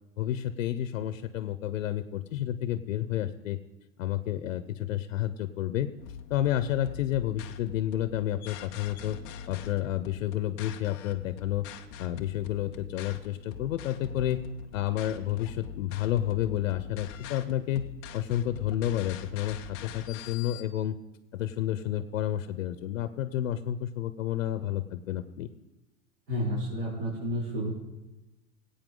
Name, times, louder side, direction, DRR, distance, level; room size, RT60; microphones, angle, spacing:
voice 1, 0.2-3.6 4.0-5.9 6.3-9.2 9.5-11.6 12.0-14.4 14.7-17.9 18.1-20.9 21.3-25.5, left 12 dB, 75° left, 12 dB, 0.8 m, -30 dB
sound 1, 6.0-20.6, left 8 dB, 20° left, 0.4 m, -44 dB
voice 2, 26.3-27.7, equal, 50° right, -9 dB, 4.4 m, -31 dB
17.5 x 8.7 x 3.8 m, 1.0 s
supercardioid pair, 160°, 39 cm